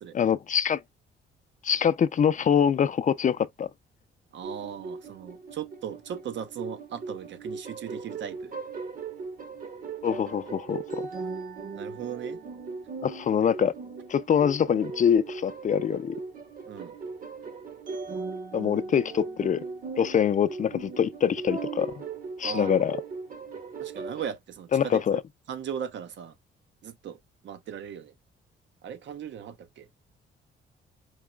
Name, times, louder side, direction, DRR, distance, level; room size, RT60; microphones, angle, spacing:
voice 1, 0.1-0.8 1.6-3.7 10.0-11.0 13.0-13.7 14.1-16.2 18.5-19.6 20.0-21.9 22.4-23.0 24.7-25.2, left 8 dB, 40° left, 0.5 m, -24 dB
voice 2, 4.3-8.5 11.7-12.4 16.7-16.9 22.4-22.9 23.8-25.2 25.5-26.3 26.8-27.2 27.4-28.1 28.8-29.9, right 8 dB, 65° right, 0.8 m, -38 dB
sound 1, 4.4-24.3, right 4 dB, 45° right, 1.1 m, -38 dB
4.7 x 2.9 x 2.3 m
cardioid pair, 90°, 20 cm